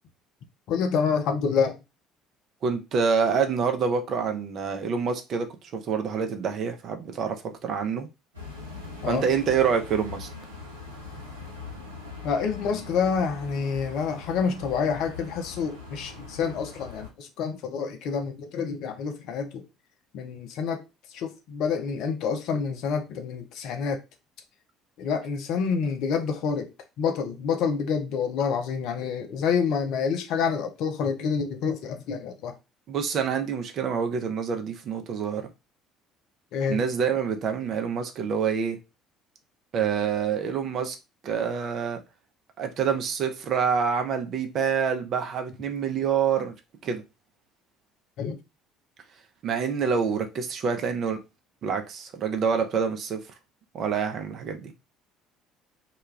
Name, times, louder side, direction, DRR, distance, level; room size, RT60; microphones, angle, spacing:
voice 1, 0.7-1.7 9.0-9.2 12.2-19.6 20.1-20.8 21.1-24.0 25.0-26.7 27.0-32.5 36.5-36.8 48.2-48.4, left 6 dB, 60° left, 0.5 m, -28 dB
voice 2, 2.6-8.1 9.1-10.3 32.9-35.5 36.7-38.8 39.7-41.0 41.2-42.0 42.6-46.5 46.8-47.0 49.4-51.2 51.6-53.2 53.7-54.7, right 6 dB, 50° right, 0.6 m, -27 dB
sound 1, 8.3-17.1, left 4 dB, 90° right, 0.7 m, -41 dB
2.3 x 2.2 x 3.1 m
figure-of-eight pair, 55°, 0 cm